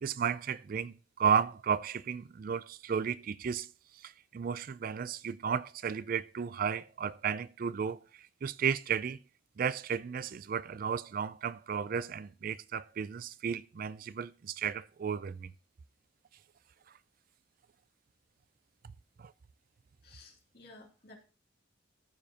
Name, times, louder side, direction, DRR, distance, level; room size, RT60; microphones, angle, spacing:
voice 1, 0.0-3.7 4.0-9.2 9.6-15.5 19.2-19.3, right 7 dB, 45° right, 0.3 m, -33 dB
voice 2, 20.0-21.1, left 2 dB, 55° left, 2.7 m, -55 dB
14.5 x 7.1 x 2.8 m
head